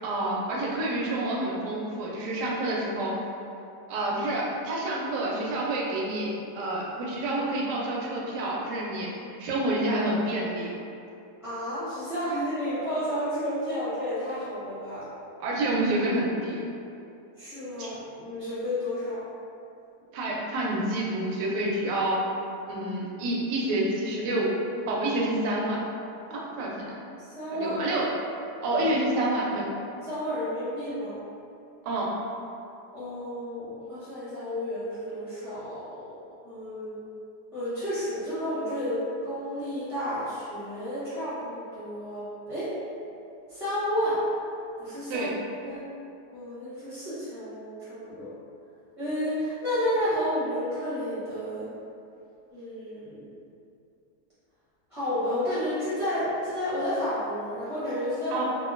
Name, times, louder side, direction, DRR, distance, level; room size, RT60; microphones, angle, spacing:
voice 1, 0.0-3.1 3.9-9.1 9.4-10.7 15.4-16.6 17.8-17.9 20.1-22.2 22.7-24.5 24.9-25.8 26.3-27.0 27.5-28.1 28.6-29.7 31.8-32.1 45.1-45.3 58.3-58.4, right 1 dB, 85° right, -3 dB, 1.2 m, -28 dB
voice 2, 11.4-15.0 17.4-19.2 27.3-27.7 30.0-31.2 32.9-36.1 36.4-37.0 37.5-42.7 43.5-44.2 44.8-45.3 45.6-45.8 46.3-48.3 49.0-51.7 52.5-53.3 54.9-58.4, equal, 30° left, -16 dB, 0.6 m, -31 dB
2.8 x 2.3 x 2.4 m, 2.6 s
omnidirectional pair, 1.8 m